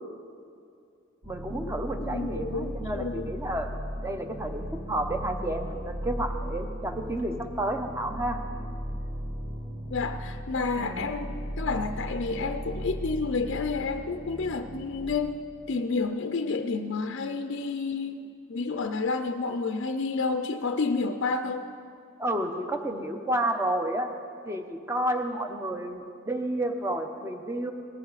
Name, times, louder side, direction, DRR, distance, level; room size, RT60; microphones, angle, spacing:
sound 1, 1.2-15.2, equal, 80° right, 2.9 m, -37 dB
voice 1, 1.3-3.7 4.0-8.4 10.8-11.1 22.2-24.1 24.5-27.7, right 1 dB, 15° right, 5 dB, 0.8 m, -31 dB
voice 2, 2.0-3.3 9.9-15.4 15.7-21.7, left 4 dB, 55° left, 7 dB, 0.5 m, -30 dB
18.5 x 14.0 x 4.1 m, 2.4 s
head